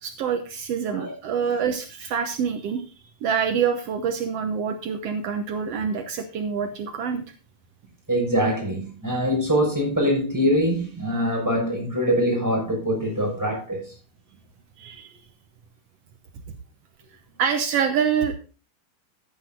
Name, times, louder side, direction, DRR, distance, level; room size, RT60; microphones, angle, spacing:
voice 1, 0.0-2.9 3.2-7.2 14.8-15.1 17.4-18.3, right 7 dB, 75° right, 1.4 m, -26 dB
voice 2, 8.1-13.9, equal, 5° right, 5.8 m, -23 dB
15.0 x 9.8 x 2.6 m
omnidirectional pair, 4.2 m